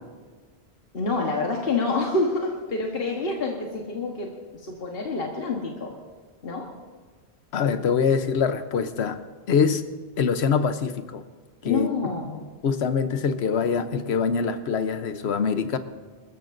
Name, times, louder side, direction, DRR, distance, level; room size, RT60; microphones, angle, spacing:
voice 1, 0.9-4.3 4.7-5.9 6.4-6.7 11.6-12.5, left 3 dB, 65° left, 0 dB, 1.5 m, -27 dB
voice 2, 7.5-9.2 9.5-9.8 10.2-11.2 11.6-11.9 12.6-15.8, left 6 dB, 80° left, 10 dB, 1.1 m, -24 dB
27.0 x 14.0 x 2.6 m, 1.4 s
omnidirectional pair, 1.1 m